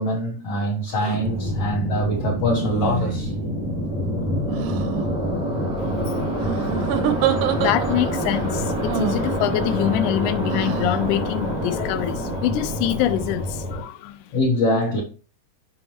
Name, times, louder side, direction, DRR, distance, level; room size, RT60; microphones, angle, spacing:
voice 1, 0.0-3.3 14.3-15.0, equal, 60° left, 1.7 m, -23 dB
sound 1, 0.9-1.2 2.5-3.4 4.5-5.0 6.4-8.1 8.9-9.3 10.5-11.0, right 10 dB, 80° right, 2.1 m, -27 dB
sound 2, 1.1-13.8, equal, 5° right, 0.7 m, -26 dB
voice 2, 7.6-14.2, left 12 dB, 80° left, 1.9 m, -25 dB
7.0 x 5.3 x 2.9 m
omnidirectional pair, 3.7 m